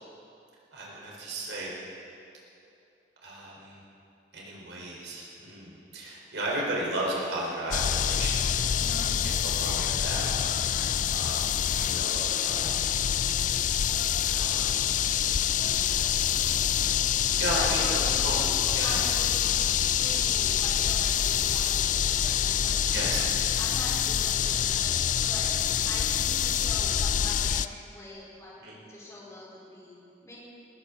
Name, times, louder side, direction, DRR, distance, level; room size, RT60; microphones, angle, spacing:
voice 1, 0.7-1.8 3.2-3.8 4.3-12.9 13.4-13.5 14.2-14.9 17.4-18.3 18.7-19.0 22.9-23.4 28.6-28.8, right 1 dB, 85° right, -4 dB, 4.6 m, -35 dB
sound 1, 7.7-27.7, left 9 dB, 45° left, 0.4 m, -26 dB
voice 2, 8.8-9.3 17.5-19.6 20.0-23.2 23.6-25.5 25.8-28.6 28.9-30.4, left 1 dB, 15° left, -6 dB, 4.3 m, -43 dB
19.5 x 16.0 x 4.0 m, 2.7 s
head